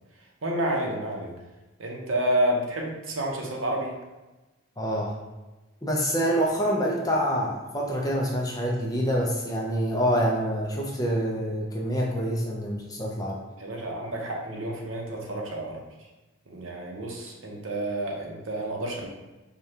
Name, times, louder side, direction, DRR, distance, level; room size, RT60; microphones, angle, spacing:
voice 1, 0.4-1.3 1.8-3.9 13.6-15.8 16.5-19.1, right 1 dB, 80° right, -1 dB, 0.8 m, -29 dB
voice 2, 4.8-5.1 5.8-13.4, equal, 20° left, -2 dB, 0.5 m, -26 dB
4.9 x 2.3 x 2.8 m, 1.1 s
head